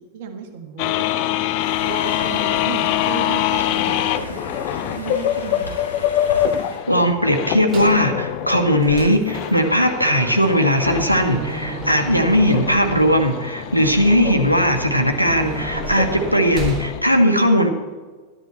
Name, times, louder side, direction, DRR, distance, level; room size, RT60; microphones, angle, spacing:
voice 1, 0.1-1.6 2.3-4.4 4.9-5.7, right 6 dB, 55° right, 5 dB, 1.5 m, -34 dB
sound 1, 0.8-17.0, left 12 dB, 45° left, 0.6 m, -25 dB
Conversation, 1.6-6.8, left 1 dB, 80° left, 4.3 m, -34 dB
voice 2, 6.9-17.7, equal, 90° right, 5 dB, 1.2 m, -18 dB
sound 2, 7.7-8.0 8.5-16.9, right 1 dB, 20° right, 4.4 m, -32 dB
12.0 x 11.0 x 4.4 m, 1.4 s
figure-of-eight pair, 90°, 0 cm